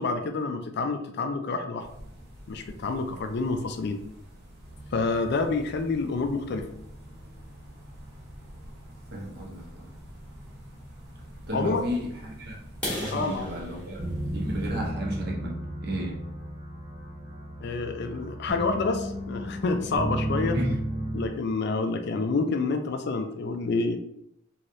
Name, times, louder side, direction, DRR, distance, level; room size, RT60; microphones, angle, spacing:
voice 1, 0.0-1.8 2.5-4.0 4.9-6.7 11.5-11.8 13.1-13.5 17.6-20.6 21.1-24.0, left 3 dB, 50° left, 7 dB, 0.3 m, -28 dB
sound 1, 1.8-14.9, equal, 85° right, 0.9 m, -47 dB
sound 2, 4.6-21.3, right 1 dB, 25° right, 0.4 m, -37 dB
voice 2, 9.1-9.9 11.5-12.6 12.9-16.2 20.5-20.8, equal, 50° right, -1 dB, 0.8 m, -33 dB
sound 3, 12.7-16.5 17.0-17.2 17.6-17.7 18.2-18.3 18.6-18.7 19.2-19.3 19.5-20.0, left 1 dB, 5° left, 1.0 m, -39 dB
3.1 x 2.8 x 2.6 m, 0.77 s
head